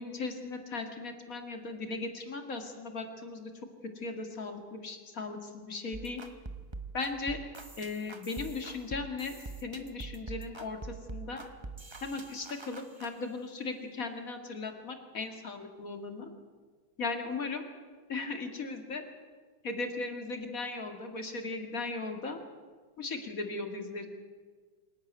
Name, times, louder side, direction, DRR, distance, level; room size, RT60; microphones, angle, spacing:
voice 1, 0.0-3.5 4.0-6.2 6.9-7.4 7.8-9.3 9.6-11.4 12.0-16.3 17.0-17.6 18.1-19.0 19.6-22.4 23.0-24.1, left 3 dB, 40° left, 5 dB, 2.4 m, -37 dB
sound 1, 5.9-13.1, right 3 dB, 25° right, 0.5 m, -44 dB
26.5 x 11.5 x 9.3 m, 1.5 s
omnidirectional pair, 2.3 m